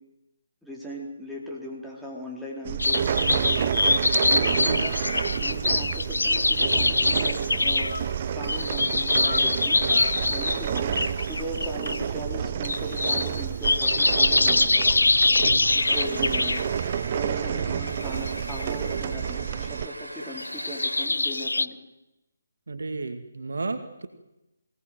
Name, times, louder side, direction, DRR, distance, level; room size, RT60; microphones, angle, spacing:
voice 1, 0.6-3.7 4.2-5.0 5.4-7.9 8.3-9.8 10.3-14.6 15.7-16.8 17.1-21.8, equal, ahead, -3 dB, 4.3 m, -38 dB
sound 1, 2.6-19.9, right 9 dB, 35° right, 0.8 m, -29 dB
sound 2, 2.8-8.1 8.4-12.1 12.4-16.6 17.9-18.9 20.2-21.7, left 2 dB, 75° left, 0.7 m, -24 dB
sound 3, 15.7-21.1, right 1 dB, 85° right, 3.3 m, -40 dB
voice 2, 22.7-24.1, right 3 dB, 65° right, 8 dB, 2.3 m, -32 dB
24.0 x 18.5 x 7.9 m, 0.94 s
figure-of-eight pair, 145°, 0 cm